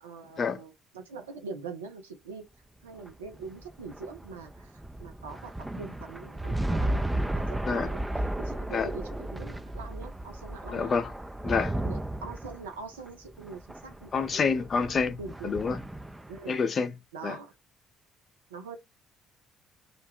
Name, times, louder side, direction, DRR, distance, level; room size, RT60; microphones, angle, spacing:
voice 1, 0.0-2.4 2.8-8.0 8.4-10.9 11.8-14.6 15.2-15.5 16.3-16.6 17.1-17.5 18.5-18.8, right 4 dB, 80° right, 0.5 m, -43 dB
sound 1, 2.9-16.5, right 1 dB, 10° right, 0.4 m, -34 dB
voice 2, 10.7-11.1 11.4-11.7 14.1-15.8 16.5-16.9 17.2-17.4, left 5 dB, 40° left, 0.5 m, -28 dB
2.5 x 2.1 x 3.3 m
figure-of-eight pair, 50°, 0 cm